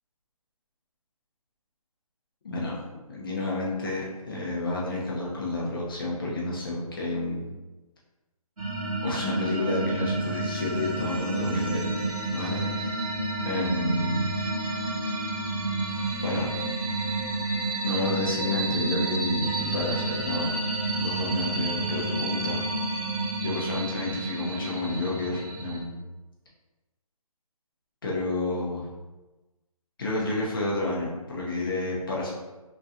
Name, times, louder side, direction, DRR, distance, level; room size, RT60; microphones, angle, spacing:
voice 1, 3.1-7.5 9.0-12.0 12.3-12.9 13.4-14.3 16.2-16.5 17.8-20.5 21.0-22.6 23.4-26.0 28.0-28.9 30.0-32.3, left 2 dB, 35° left, -4 dB, 0.7 m, -30 dB
sound 1, 8.6-25.8, right 2 dB, 70° right, 1.0 m, -30 dB
3.0 x 2.8 x 2.4 m, 1.1 s
hypercardioid pair, 170°, 19 cm